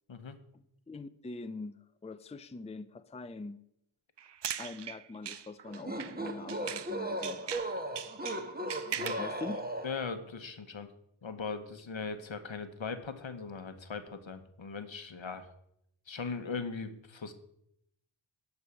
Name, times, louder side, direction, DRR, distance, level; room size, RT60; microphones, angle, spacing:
voice 1, 0.9-3.6 4.6-7.5 9.2-9.6, left 3 dB, 15° left, 11 dB, 0.5 m, -43 dB
sound 1, 4.2-7.0 7.2-9.3, right 9 dB, 60° right, 0.5 m, -40 dB
sound 2, 5.7-10.1, right 1 dB, 20° right, 1.2 m, -37 dB
voice 2, 9.8-10.9 11.2-15.5 16.1-17.3, left 5 dB, 70° left, 9 dB, 1.1 m, -39 dB
11.5 x 4.8 x 7.1 m, 0.76 s
wide cardioid pair, 45°, 48 cm